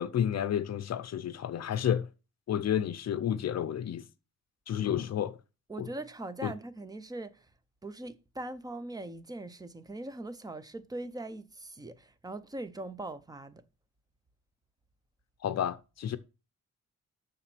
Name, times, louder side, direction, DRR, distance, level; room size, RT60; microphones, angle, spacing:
voice 1, 0.0-2.1 2.5-4.1 4.7-5.4 5.8-5.9 6.4-6.5 15.4-16.2, left 9 dB, 60° left, 0.7 m, -31 dB
voice 2, 5.7-7.4 7.8-13.6, right 2 dB, 10° right, 0.7 m, -41 dB
7.1 x 6.5 x 6.1 m
wide cardioid pair, 155°, 30 cm